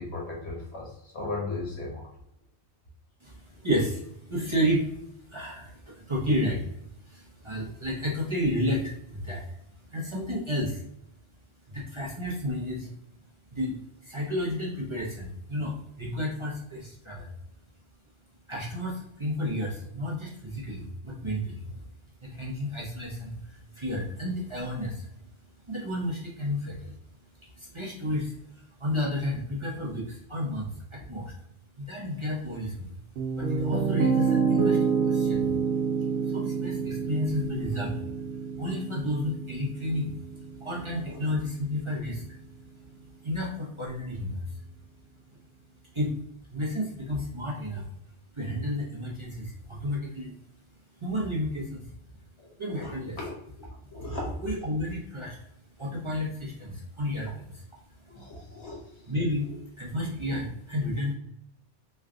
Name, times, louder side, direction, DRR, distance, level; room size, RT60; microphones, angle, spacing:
voice 1, 0.0-2.1 41.0-41.2 52.4-53.3 53.9-54.4 58.1-59.1, left 2 dB, 75° left, -2 dB, 1.5 m, -37 dB
voice 2, 3.4-10.8 11.7-12.9 13.5-17.3 18.5-21.9 22.2-25.1 25.6-27.0 27.5-31.3 31.8-33.0 33.3-35.5 36.2-42.4 43.2-44.6 45.9-46.2 46.5-47.9 48.3-50.4 51.0-51.9 52.6-53.3 53.6-53.7 54.2-55.4 55.8-57.6 58.0-58.1 59.1-61.1, left 1 dB, 30° right, -4 dB, 0.7 m, -32 dB
Piano, 33.2-41.3, right 5 dB, 85° right, 0.9 m, -28 dB
3.3 x 2.3 x 3.7 m, 0.77 s
omnidirectional pair, 1.1 m